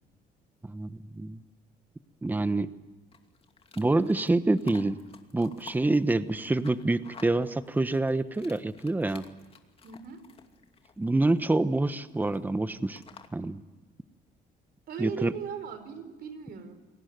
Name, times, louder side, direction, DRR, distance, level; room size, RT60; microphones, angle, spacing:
voice 1, 0.6-1.4 2.2-2.7 3.8-5.0 5.3-9.2 11.0-13.0 13.3-13.6 15.0-15.3, right 2 dB, 10° right, 13 dB, 1.1 m, -26 dB
sound 1, 3.1-13.3, left 5 dB, 35° left, 2.5 m, -54 dB
voice 2, 9.8-10.2 14.9-16.8, right 7 dB, 65° right, 10 dB, 4.3 m, -38 dB
29.0 x 19.0 x 9.4 m, 1.2 s
cardioid pair, 110°, 17 cm